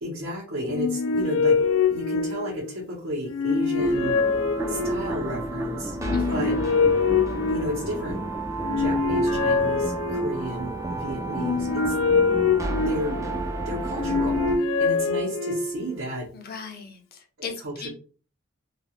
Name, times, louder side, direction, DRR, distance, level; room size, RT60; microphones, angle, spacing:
voice 1, 0.0-1.5 1.9-4.2 4.7-6.0 6.3-6.6 7.5-8.2 8.7-11.9 12.8-13.2 13.6-14.3 14.8-16.3 17.4-17.9, equal, 75° right, -4 dB, 0.8 m, -32 dB
sound 1, 0.7-2.8 3.3-5.3 6.0-8.1 8.6-10.6 11.3-13.5 13.9-16.0, left 4 dB, 90° left, 0.3 m, -24 dB
sound 2, 3.8-14.6, right 2 dB, 15° right, 0.3 m, -31 dB
voice 2, 6.1-6.5 16.3-17.5 17.8-17.9, left 5 dB, 50° left, 3 dB, 0.6 m, -38 dB
2.3 x 2.3 x 2.8 m, 0.37 s
head